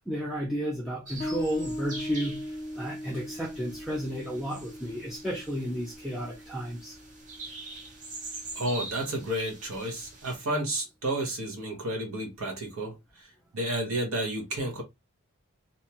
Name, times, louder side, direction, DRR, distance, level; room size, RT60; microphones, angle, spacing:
voice 1, 0.0-7.0, equal, ahead, 0.4 m, -33 dB
sound 1, 1.1-10.4, right 2 dB, 35° right, 0.8 m, -44 dB
Bass guitar, 1.2-8.4, equal, 45° left, 0.7 m, -39 dB
voice 2, 8.5-13.0 13.5-14.8, right 1 dB, 70° right, 0.9 m, -31 dB
2.6 x 2.2 x 2.8 m
head